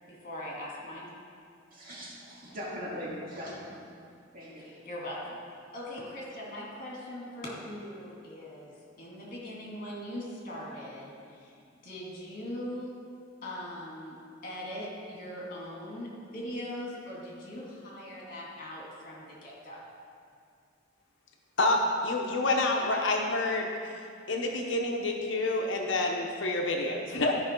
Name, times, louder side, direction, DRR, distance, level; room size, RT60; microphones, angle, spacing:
voice 1, 0.1-1.1 4.6-5.4 5.7-11.6 11.8-13.0 13.4-14.2 14.4-19.8, left 1 dB, 45° left, -4 dB, 2.3 m, -40 dB
voice 2, 1.7-3.8 4.3-4.7, equal, 45° right, -6 dB, 2.4 m, -40 dB
voice 3, 21.6-27.3, left 2 dB, 65° left, 1 dB, 0.9 m, -28 dB
13.0 x 5.6 x 4.5 m, 2.4 s
head